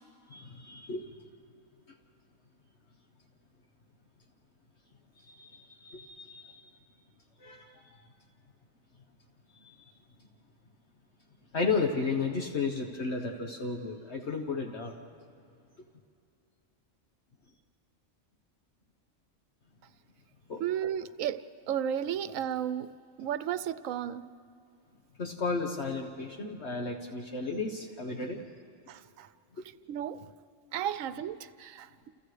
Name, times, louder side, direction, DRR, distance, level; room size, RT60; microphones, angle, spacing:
voice 1, 0.3-1.1 5.3-6.6 7.4-7.8 9.6-9.7 11.5-14.9 20.5-20.6 25.2-28.4, left 4 dB, 60° left, 2 dB, 1.5 m, -33 dB
voice 2, 20.6-22.9 23.2-24.3 28.9-29.3 29.9-30.3 30.7-32.1, right 9 dB, 85° right, 12 dB, 1.0 m, -33 dB
30.0 x 29.0 x 3.3 m, 2.6 s
omnidirectional pair, 1.3 m